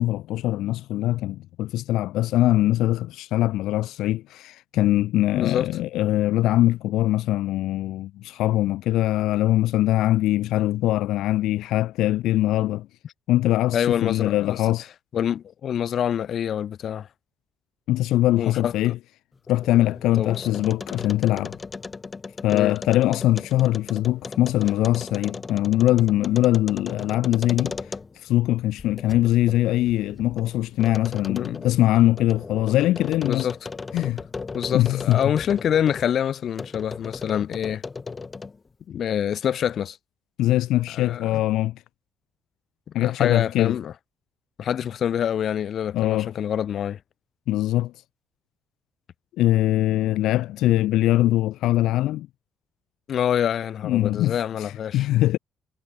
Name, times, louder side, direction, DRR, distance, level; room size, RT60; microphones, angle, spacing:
voice 1, 0.0-12.9 13.3-14.9 17.9-19.0 19.5-21.6 22.4-33.5 33.9-34.2 34.7-35.2 40.4-41.8 42.9-43.8 45.9-46.3 47.5-47.9 49.4-52.3 53.8-55.4, left 15 dB, 90° left, 0.6 m, -22 dB
voice 2, 5.4-5.7 13.7-14.6 15.1-17.1 18.4-18.9 20.2-20.5 22.5-22.8 31.3-31.7 33.2-33.6 34.5-37.8 38.9-40.0 40.9-41.4 42.9-43.9 44.6-47.0 53.1-55.1, left 9 dB, 65° left, 0.9 m, -26 dB
sound 1, 19.4-28.3 28.8-36.1 36.6-38.7, left 4 dB, 30° left, 5.1 m, -37 dB
cardioid pair, 90°, 0 cm